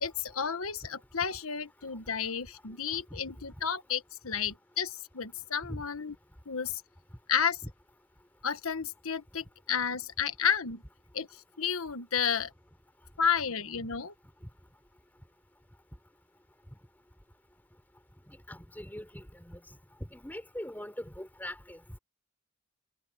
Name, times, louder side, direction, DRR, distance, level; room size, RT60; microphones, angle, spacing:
voice 1, 0.0-6.1 6.5-6.8 7.3-7.6 8.4-10.8 11.1-11.3 11.6-12.5 13.2-14.1, left 7 dB, 75° left, 1.4 m, -31 dB
voice 2, 18.5-19.6 20.1-22.0, equal, 10° left, 4.9 m, -42 dB
head